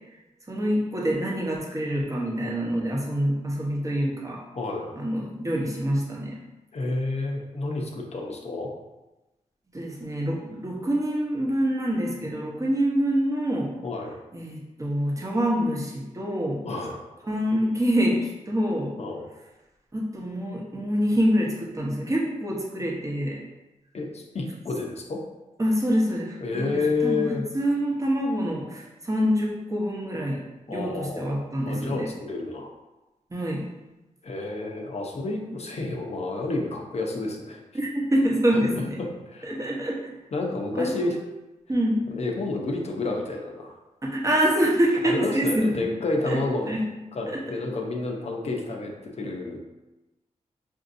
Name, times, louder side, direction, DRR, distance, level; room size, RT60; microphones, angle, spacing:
voice 1, 0.5-4.4 5.0-6.4 9.7-13.7 14.3-16.6 17.3-19.0 19.9-23.4 25.6-30.4 30.7-32.1 33.3-33.7 37.7-39.0 39.4-40.1 40.7-41.1 41.7-42.0 44.0-45.8 46.2-46.4 46.7-46.9 47.3-47.4, equal, 25° right, -2 dB, 0.9 m, -26 dB
voice 2, 4.6-4.9 6.7-8.7 13.8-14.1 16.6-17.0 19.0-19.2 23.9-25.2 26.4-27.4 30.7-32.7 34.2-37.6 39.0-39.5 40.3-41.2 42.2-43.7 45.0-46.7 47.1-49.6, left 3 dB, 55° left, 0 dB, 0.7 m, -30 dB
5.0 x 2.6 x 2.6 m, 1.0 s
cardioid pair, 80°, 13 cm